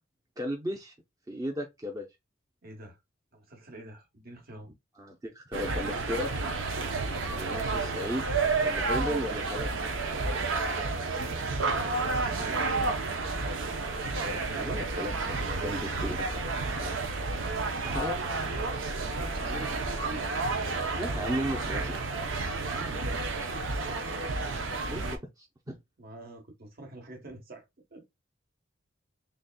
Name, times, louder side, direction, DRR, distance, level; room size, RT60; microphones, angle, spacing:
voice 1, 0.4-0.9 1.3-2.1 5.0-6.4 7.3-8.3 8.6-9.9 13.9-16.4 17.8-18.2 20.9-22.1 22.4-22.5 24.9-25.0 25.4-25.5, equal, 20° right, 0.6 m, -35 dB
voice 2, 2.6-3.0 3.3-4.7 12.0-12.7 16.7-17.2 18.9-20.4 22.7-23.6 26.0-27.6 27.9-28.0, right 2 dB, 50° right, 1.2 m, -46 dB
sound 1, 5.5-25.2, right 3 dB, 80° right, 0.7 m, -31 dB
4.0 x 3.3 x 2.2 m
head